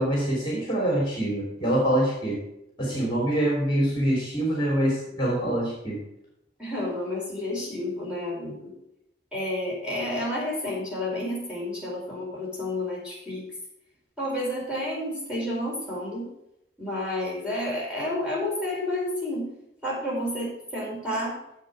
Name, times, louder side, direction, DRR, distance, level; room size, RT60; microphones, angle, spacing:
voice 1, 0.0-2.4 2.8-6.0, right 1 dB, 25° left, -3 dB, 3.0 m, -25 dB
voice 2, 6.6-8.7 9.3-13.4 14.2-16.3 16.8-19.5 19.8-21.3, left 1 dB, 5° right, -6 dB, 4.6 m, -30 dB
8.0 x 7.6 x 6.5 m, 0.82 s
head